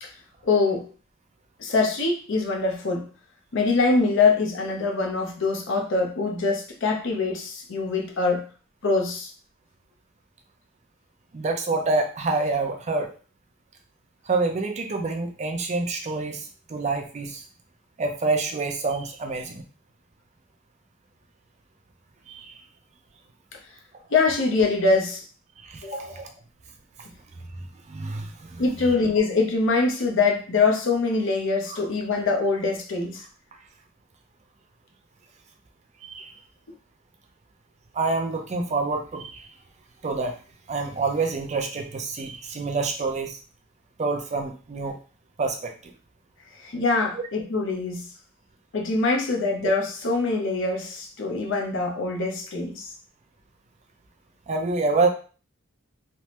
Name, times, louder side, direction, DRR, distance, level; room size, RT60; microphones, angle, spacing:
voice 1, 0.4-0.9 1.6-3.1 3.5-8.5 8.8-9.3 24.1-25.2 25.8-26.3 28.6-33.2 46.6-48.1 48.7-52.9, left 3 dB, 65° left, 2 dB, 0.7 m, -24 dB
voice 2, 11.3-13.1 14.3-17.4 18.0-19.6 22.3-22.5 25.6-26.3 27.9-28.6 31.7-31.8 36.0-36.3 37.9-39.5 40.0-40.4 40.7-43.4 44.0-45.0 45.4-45.9 54.5-55.1, right 3 dB, 35° right, 4 dB, 0.4 m, -27 dB
3.3 x 2.0 x 2.9 m, 0.36 s
head